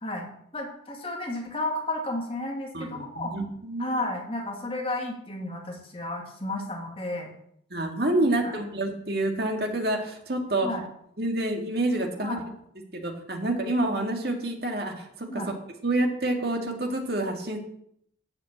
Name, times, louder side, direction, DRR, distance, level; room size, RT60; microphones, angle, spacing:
voice 1, 0.0-3.3 3.8-7.3 8.4-8.5 10.6-10.8 12.2-12.5 15.3-15.5, left 2 dB, 30° left, 0 dB, 2.6 m, -32 dB
voice 2, 2.7-3.9 7.7-10.7 11.2-12.4 12.9-15.4 15.8-17.6, right 1 dB, 55° right, 3 dB, 2.2 m, -28 dB
13.0 x 5.8 x 8.8 m, 0.70 s
head